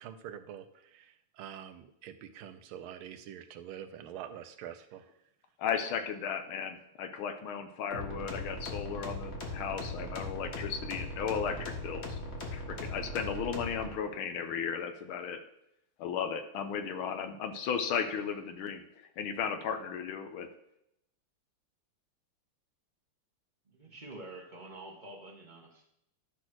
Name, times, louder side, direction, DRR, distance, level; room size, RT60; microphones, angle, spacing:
voice 1, 0.0-5.1, right 10 dB, 75° right, 9 dB, 1.4 m, -46 dB
voice 2, 5.6-12.2 12.5-15.4 16.0-18.8 19.2-20.5, left 7 dB, 75° left, 7 dB, 1.6 m, -35 dB
sound 1, 7.9-13.9, left 1 dB, 35° left, 1.6 m, -39 dB
voice 3, 23.6-25.9, right 2 dB, 25° right, -1 dB, 1.5 m, -48 dB
11.0 x 4.1 x 6.2 m, 0.79 s
omnidirectional pair, 2.4 m